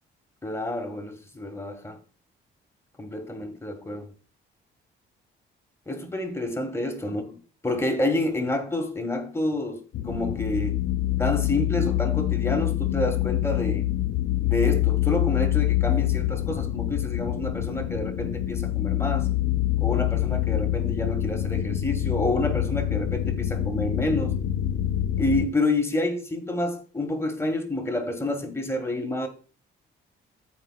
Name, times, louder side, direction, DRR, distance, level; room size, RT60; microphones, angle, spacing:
voice 1, 0.4-2.0 3.0-4.1 5.9-7.2 7.6-10.8 11.2-13.9 14.4-19.3 19.8-24.4 25.2-29.3, left 2 dB, 15° left, 1.8 m, -28 dB
sound 1, 9.9-25.5, left 14 dB, 70° left, 0.7 m, -26 dB
14.5 x 5.2 x 2.4 m
cardioid pair, 90°, 20 cm